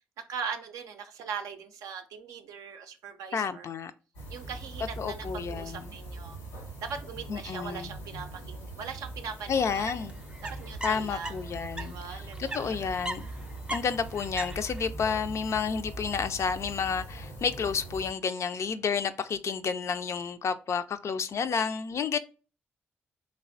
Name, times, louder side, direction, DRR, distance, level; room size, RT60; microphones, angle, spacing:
voice 1, 0.3-3.7 4.3-6.4 6.8-9.9 10.4-11.4 11.8-12.9 13.2-13.4, right 6 dB, 75° right, 0.4 m, -40 dB
voice 2, 3.3-3.9 5.0-5.9 7.3-7.9 9.5-10.1 10.8-13.3 13.7-22.2, left 6 dB, 55° left, 0.3 m, -30 dB
sound 1, 4.1-18.1, right 2 dB, 90° left, 0.8 m, -42 dB
sound 2, 9.5-11.9 12.2-14.9, right 1 dB, 15° right, 0.5 m, -38 dB
3.3 x 2.1 x 2.5 m
hypercardioid pair, 40°, 6 cm